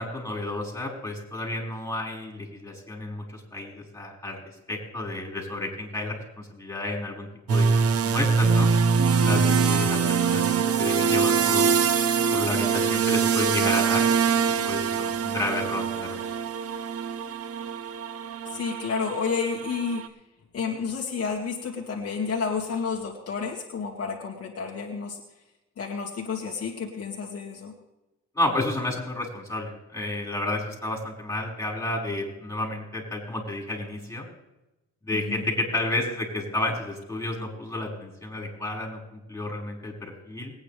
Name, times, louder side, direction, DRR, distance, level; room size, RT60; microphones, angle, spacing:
voice 1, 0.0-4.4 4.7-8.7 9.2-11.7 12.3-14.1 14.4-16.2 28.4-34.3 35.1-40.5, left 2 dB, 10° left, -2 dB, 5.4 m, -31 dB
sound 1, 7.5-20.1, right 6 dB, 50° right, 1.0 m, -23 dB
voice 2, 18.5-20.0 20.5-25.2 25.8-27.7 35.1-35.4, left 5 dB, 50° left, -1 dB, 2.2 m, -30 dB
21.0 x 9.6 x 3.4 m, 0.98 s
cardioid pair, 90°, 30 cm